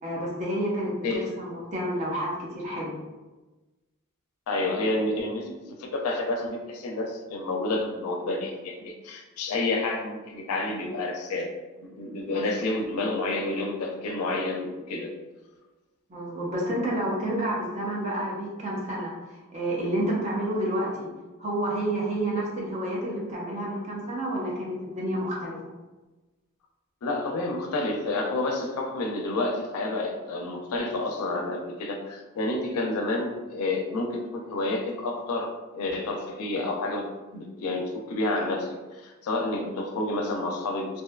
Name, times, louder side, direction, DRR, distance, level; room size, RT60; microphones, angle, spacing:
voice 1, 0.0-3.0 12.3-12.4 16.1-21.1 21.4-25.6, right 1 dB, 35° right, -4 dB, 0.6 m, -29 dB
voice 2, 4.5-11.5 11.7-15.1 27.0-37.1 37.3-40.9, left 2 dB, 85° left, 2 dB, 0.4 m, -29 dB
2.6 x 2.3 x 2.2 m, 1.2 s
head